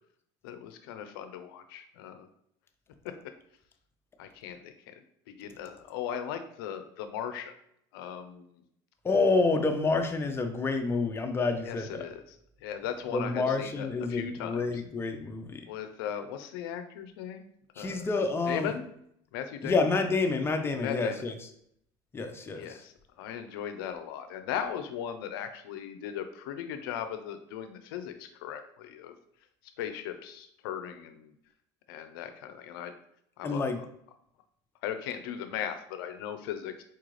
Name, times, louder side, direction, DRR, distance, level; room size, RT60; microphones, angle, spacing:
voice 1, 0.4-2.3 3.0-3.3 4.2-7.5 7.9-8.6 11.6-12.2 12.6-14.6 15.7-17.5 17.8-18.0 18.5-18.9 19.3-19.8 20.8-21.2 22.6-22.9 23.2-29.1 29.8-31.3 31.9-32.9 33.4-33.6 34.8-36.8, left 9 dB, 85° left, 8 dB, 0.5 m, -38 dB
voice 2, 9.0-12.0 13.1-15.7 17.8-18.7 19.6-21.4 22.1-22.8 33.4-33.8, left 3 dB, 20° left, 5 dB, 0.6 m, -28 dB
4.4 x 2.4 x 3.1 m, 0.71 s
supercardioid pair, 95°, 12 cm